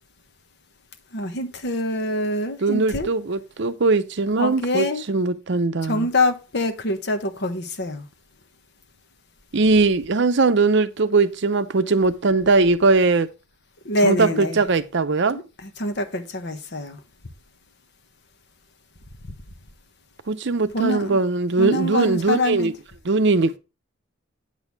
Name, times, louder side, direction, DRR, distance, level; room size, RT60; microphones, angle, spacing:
voice 1, 1.1-3.1 4.4-5.0 5.8-8.1 13.8-14.6 15.6-17.0 20.7-21.2 21.6-22.7, left 1 dB, 55° left, 1.2 m, -25 dB
voice 2, 2.6-6.1 9.5-13.3 14.0-15.4 20.3-22.7 23.1-23.6, right 3 dB, 60° right, 0.7 m, -20 dB
8.9 x 6.3 x 3.4 m
head